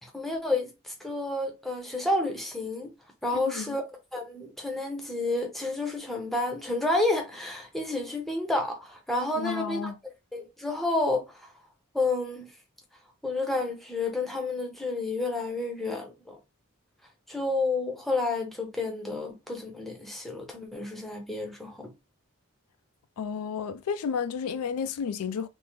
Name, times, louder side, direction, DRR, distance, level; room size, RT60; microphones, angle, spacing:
voice 1, 0.0-2.9 3.2-3.8 4.1-9.9 10.3-11.5 11.9-12.5 13.2-16.4 17.3-21.9, left 2 dB, ahead, 0.6 m, -30 dB
voice 2, 3.3-3.8 9.4-9.9 23.2-25.5, left 6 dB, 85° left, 0.4 m, -32 dB
3.5 x 2.0 x 2.9 m
head